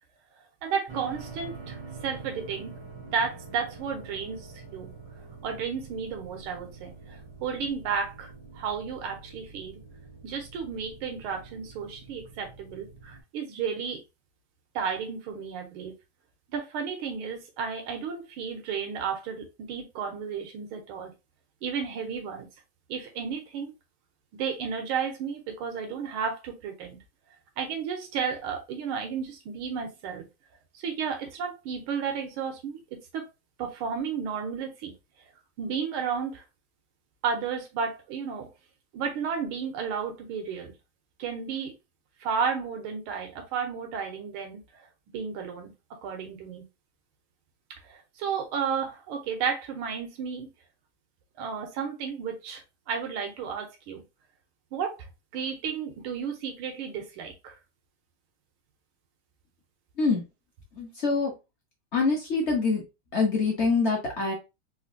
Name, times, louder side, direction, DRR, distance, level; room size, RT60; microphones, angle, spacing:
voice 1, 0.6-2.7 3.1-4.9 5.4-9.8 10.2-14.0 14.8-15.9 16.5-21.1 21.6-22.5 22.9-23.7 24.4-27.0 27.6-30.3 30.7-33.2 33.6-34.9 35.6-36.4 37.2-38.5 38.9-40.7 41.2-41.7 42.2-44.9 45.1-45.7 46.0-46.7 47.8-50.5 51.4-54.0 54.7-55.1 55.3-57.6, right 6 dB, 90° right, 1.6 m, -33 dB
sound 1, 0.9-13.2, right 4 dB, 40° right, 0.4 m, -45 dB
voice 2, 60.7-61.3 61.9-62.8 63.1-64.3, left 4 dB, 55° left, 0.8 m, -25 dB
4.0 x 2.5 x 2.6 m
omnidirectional pair, 2.3 m